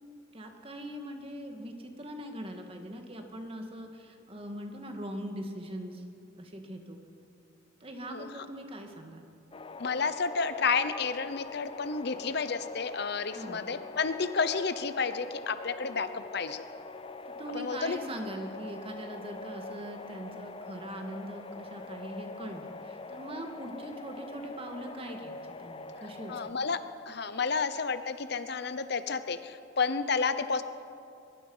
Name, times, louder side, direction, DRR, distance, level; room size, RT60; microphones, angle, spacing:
voice 1, 0.3-6.0 6.4-7.0 7.8-9.2 13.3-13.7 17.3-26.6, equal, 30° right, 4 dB, 2.1 m, -41 dB
sound 1, 9.5-26.5, left 3 dB, 25° left, 0.6 m, -44 dB
voice 2, 9.8-16.6 17.5-18.0 26.3-26.8 27.1-30.6, left 5 dB, 55° left, 11 dB, 0.8 m, -31 dB
22.5 x 22.0 x 5.6 m, 2.6 s
head